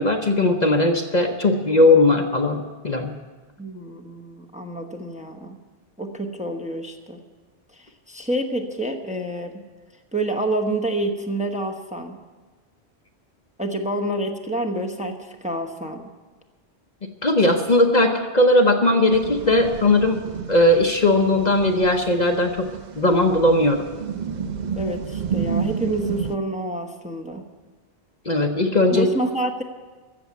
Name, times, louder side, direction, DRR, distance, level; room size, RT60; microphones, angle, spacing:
voice 1, 0.0-3.1 17.2-20.2 20.5-22.7 23.0-23.9 28.3-29.1, left 2 dB, 40° left, 3 dB, 0.9 m, -18 dB
voice 2, 3.6-5.6 6.0-7.2 7.7-9.6 10.1-12.2 13.6-16.0 24.8-27.5 28.9-29.6, right 1 dB, 5° right, 2 dB, 1.0 m, -28 dB
sound 1, 19.1-26.4, right 7 dB, 50° right, 0.6 m, -31 dB
15.5 x 7.1 x 9.3 m, 1.3 s
omnidirectional pair, 1.1 m